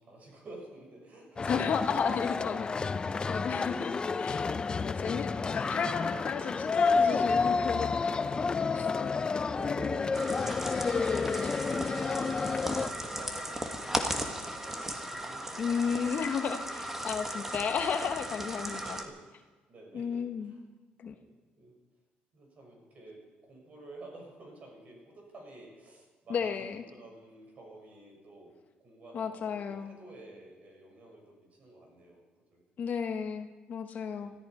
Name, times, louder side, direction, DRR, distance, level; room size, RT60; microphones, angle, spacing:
voice 1, 0.0-1.7 2.3-2.5 9.5-11.6 12.5-16.2 16.5-17.7 18.4-20.6 21.0-21.7 22.3-26.5 26.9-28.5 28.8-32.2 32.5-32.9 34.1-34.3, right 2 dB, 45° right, 0 dB, 6.3 m, -51 dB
sound 1, 1.4-12.9, left 4 dB, 25° left, 0.5 m, -30 dB
voice 2, 1.5-2.7 3.3-8.3 8.7-9.1 15.6-19.0 19.9-20.5 21.0-21.2 26.3-26.8 29.1-29.9 32.8-34.3, left 6 dB, 50° left, 7 dB, 1.0 m, -33 dB
sound 2, 10.1-19.0, right 1 dB, 10° right, 1.5 m, -36 dB
19.5 x 14.0 x 4.8 m, 1.3 s
cardioid pair, 120°, 3 cm